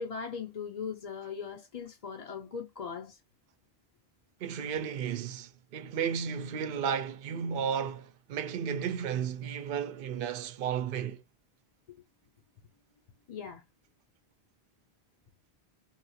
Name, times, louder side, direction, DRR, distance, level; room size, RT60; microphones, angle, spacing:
voice 1, 0.0-3.2 13.3-13.6, left 6 dB, 45° left, 0.7 m, -39 dB
voice 2, 4.4-11.2, right 7 dB, 65° right, 0.7 m, -33 dB
3.9 x 2.3 x 2.6 m
omnidirectional pair, 1.1 m